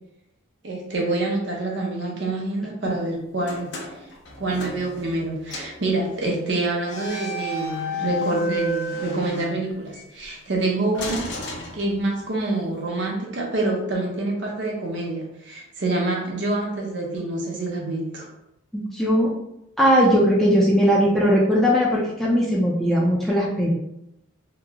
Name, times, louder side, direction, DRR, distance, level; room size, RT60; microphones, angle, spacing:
voice 1, 0.6-3.7 4.4-11.2 11.7-18.3, right 2 dB, 60° right, -1 dB, 0.7 m, -26 dB
sound 1, 3.4-5.2 5.5-5.8 6.8-10.1 10.9-12.4, left 1 dB, 55° left, 0.6 m, -32 dB
voice 2, 18.7-19.3 19.8-23.7, equal, ahead, -5 dB, 0.4 m, -19 dB
2.9 x 2.0 x 3.5 m, 0.84 s
head